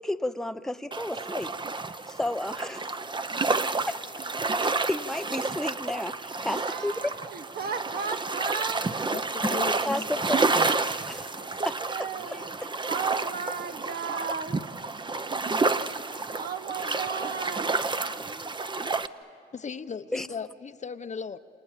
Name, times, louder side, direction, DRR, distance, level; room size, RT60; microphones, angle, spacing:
voice 1, 0.0-1.5 2.1-2.9 3.9-4.0 4.6-7.1 9.8-10.7 11.1-11.3 11.6-12.7 20.1-20.3, left 1 dB, ahead, 10 dB, 0.7 m, -32 dB
sound 1, 0.9-19.1, right 3 dB, 25° right, 0.9 m, -30 dB
voice 2, 6.5-9.0 11.4-12.5 12.8-14.6 16.3-18.0, right 6 dB, 50° right, 10 dB, 1.0 m, -35 dB
voice 3, 9.5-10.5 19.5-21.4, left 6 dB, 35° left, 10 dB, 0.8 m, -37 dB
28.5 x 28.5 x 7.4 m, 2.5 s
cardioid pair, 90°, 20 cm